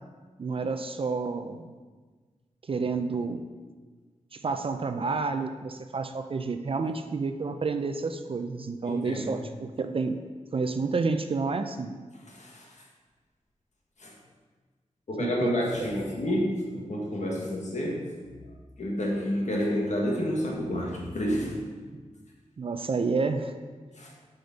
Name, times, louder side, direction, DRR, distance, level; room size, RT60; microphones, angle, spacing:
voice 1, 0.4-1.7 2.6-3.4 4.3-10.2 10.5-12.0 15.2-15.7 22.6-23.5, right 4 dB, 45° right, 7 dB, 0.4 m, -29 dB
voice 2, 8.9-9.3 12.3-12.6 14.0-14.1 15.1-18.0 18.8-21.6 24.0-24.1, left 1 dB, 70° left, -1 dB, 1.5 m, -29 dB
7.9 x 5.1 x 4.1 m, 1.4 s
wide cardioid pair, 110°, 13 cm